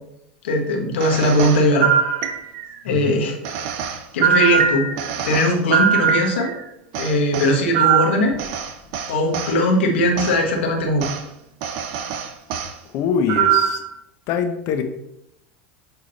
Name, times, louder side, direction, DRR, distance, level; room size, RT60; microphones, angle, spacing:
voice 1, 0.4-1.9 2.8-3.3 4.1-4.9 5.2-6.5 7.0-8.4 9.1-11.1, left 1 dB, 85° left, 1 dB, 1.5 m, -19 dB
sound 1, 1.0-2.8 3.4-6.6 6.9-9.5 10.2-10.4 11.0-11.2 11.6-12.7 13.3-13.9, right 9 dB, 60° right, 0.8 m, -22 dB
voice 2, 2.9-3.2 12.9-13.8 14.3-14.8, left 6 dB, 55° left, 7 dB, 1.0 m, -23 dB
8.1 x 3.8 x 4.2 m, 0.81 s
hypercardioid pair, 105°, 6 cm